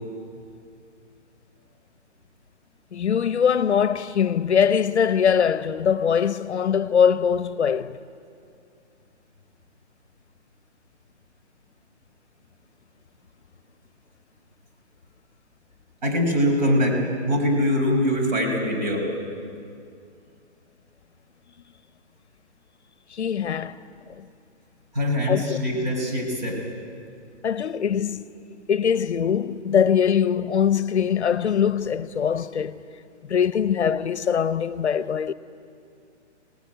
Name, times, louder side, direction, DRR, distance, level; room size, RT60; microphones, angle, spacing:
voice 1, 2.9-8.0 23.1-23.8 24.2-24.3 25.3-25.6 27.4-28.2 28.7-32.8 33.2-35.3, left 7 dB, 65° left, 0.9 m, -22 dB
voice 2, 16.0-19.1 24.9-26.6, equal, 35° right, 5.2 m, -23 dB
25.5 x 19.5 x 9.1 m
hypercardioid pair, 175°, 37 cm